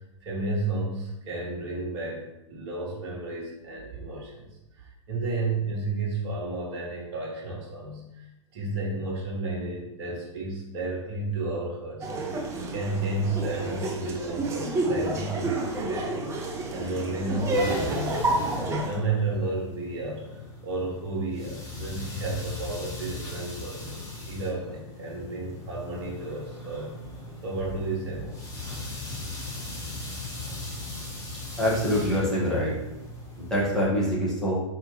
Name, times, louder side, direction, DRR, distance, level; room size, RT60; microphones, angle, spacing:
voice 1, 0.2-12.3 12.7-18.3 18.8-20.3 20.6-26.9 27.4-28.4, right 2 dB, 50° right, -3 dB, 1.3 m, -32 dB
Laughter, 12.0-18.9, right 2 dB, 15° right, 0.5 m, -29 dB
sound 1, 17.1-33.9, left 2 dB, 20° left, 1.2 m, -39 dB
voice 2, 31.6-32.7 33.4-34.6, equal, 5° left, -7 dB, 1.5 m, -25 dB
4.2 x 3.4 x 3.1 m, 0.92 s
figure-of-eight pair, 100°, 17 cm